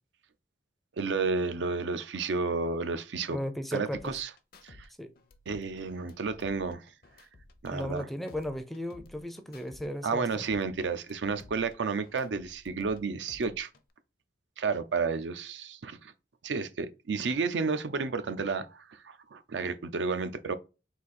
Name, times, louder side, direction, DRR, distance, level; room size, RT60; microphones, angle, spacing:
voice 1, 1.0-3.4 3.7-4.3 4.6-4.9 5.5-6.8 7.6-8.1 10.0-13.7 14.6-16.1 16.4-20.5, right 4 dB, 80° right, 0.5 m, -31 dB
voice 2, 3.3-4.1 5.0-5.1 7.7-10.3, equal, ahead, 0.4 m, -35 dB
sound 1, 3.9-4.9 5.2-8.0 8.3-9.9 10.2-13.0 13.3-13.9, left 2 dB, 55° left, 0.6 m, -54 dB
4.0 x 2.7 x 4.1 m
head